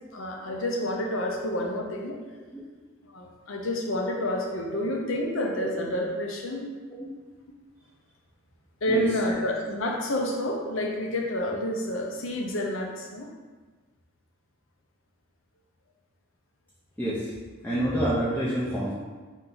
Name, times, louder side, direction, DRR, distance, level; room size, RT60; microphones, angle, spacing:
voice 1, 0.1-2.2 3.0-6.7 8.8-13.3, left 1 dB, 65° left, 1 dB, 0.6 m, -29 dB
voice 2, 17.0-17.3 17.6-18.9, right 1 dB, 10° left, -9 dB, 0.5 m, -28 dB
4.4 x 2.7 x 3.8 m, 1.3 s
head